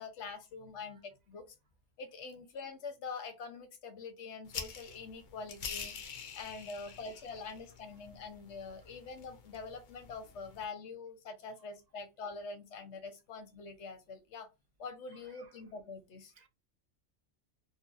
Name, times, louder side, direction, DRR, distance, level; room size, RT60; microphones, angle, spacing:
voice 1, 0.0-1.4 2.0-5.9 6.3-14.5 14.8-16.3, left 4 dB, 70° left, 1.0 m, -45 dB
sound 1, 4.5-10.6, left 6 dB, 50° left, 0.7 m, -46 dB
voice 2, 15.1-15.6 16.3-16.5, right 5 dB, 50° right, 0.5 m, -64 dB
4.0 x 2.7 x 2.5 m
omnidirectional pair, 1.2 m